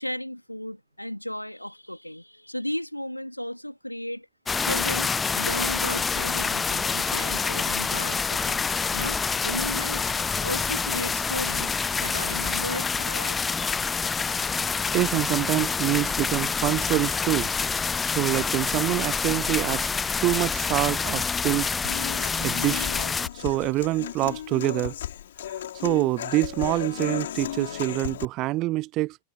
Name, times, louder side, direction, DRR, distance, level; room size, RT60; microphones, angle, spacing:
voice 1, 0.0-4.3 4.6-8.6 8.9-10.1 10.4-13.6, equal, 90° left, 2.5 m, -35 dB
sound 1, 4.5-23.3, left 5 dB, 15° left, 0.4 m, -27 dB
voice 2, 14.9-17.5 18.1-19.9 20.2-21.7 22.4-22.9 23.3-24.9 25.5-29.2, right 18 dB, 40° right, 0.8 m, -26 dB
Human voice / Acoustic guitar, 21.8-28.3, left 11 dB, 60° left, 4.8 m, -35 dB
figure-of-eight pair, 90°, 0 cm